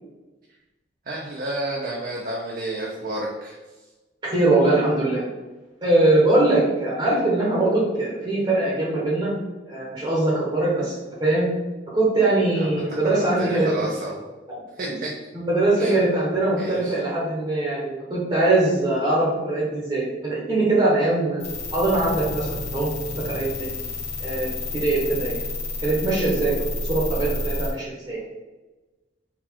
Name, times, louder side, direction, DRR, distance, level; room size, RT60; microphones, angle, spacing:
voice 1, 1.0-3.9 12.5-14.2 14.7-15.1 15.8-16.0 16.6-17.0, right 1 dB, 45° right, -2 dB, 0.5 m, -31 dB
voice 2, 4.2-5.2 5.8-9.3 9.7-11.5 11.9-13.7 15.3-21.4 21.7-22.9 23.2-23.7 24.2-24.6 24.8-25.4 25.8-28.2, right 2 dB, 25° right, -6 dB, 0.9 m, -22 dB
sound 1, 21.4-27.7, left 2 dB, 35° left, 0.9 m, -30 dB
4.0 x 2.4 x 4.4 m, 1.2 s
head